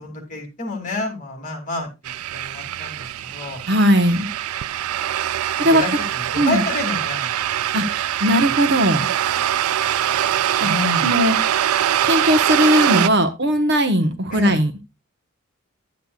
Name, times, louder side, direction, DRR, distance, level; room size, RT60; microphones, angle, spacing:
voice 1, 0.0-1.9 2.3-3.6 4.1-4.2 5.6-7.3 8.4-8.5 10.6-11.1 14.3-14.6, left 2 dB, 35° left, 4 dB, 2.6 m, -28 dB
sound 1, 2.1-13.1, right 11 dB, 85° right, 0.4 m, -23 dB
voice 2, 3.7-4.3 5.6-5.8 6.4-6.6 7.7-9.1 10.6-10.7 11.0-11.4 12.0-14.9, equal, 55° right, 8 dB, 1.1 m, -18 dB
11.0 x 8.2 x 2.4 m, 0.25 s
head